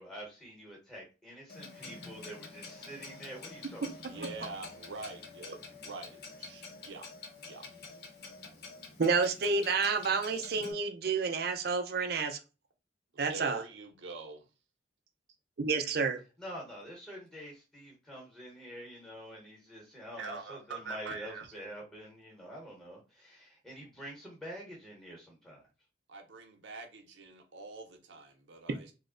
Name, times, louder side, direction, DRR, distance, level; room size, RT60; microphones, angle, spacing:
voice 1, 0.0-4.2 16.4-25.7, equal, 5° left, 0.9 m, -47 dB
Clock, 1.5-10.7, left 4 dB, 55° left, 0.7 m, -48 dB
voice 2, 4.0-7.7 13.1-14.5 20.1-21.5 26.1-28.9, right 4 dB, 85° right, 0.8 m, -45 dB
voice 3, 9.0-12.4 13.2-13.6 15.6-16.2, right 4 dB, 55° right, 0.5 m, -29 dB
3.1 x 2.0 x 3.7 m
head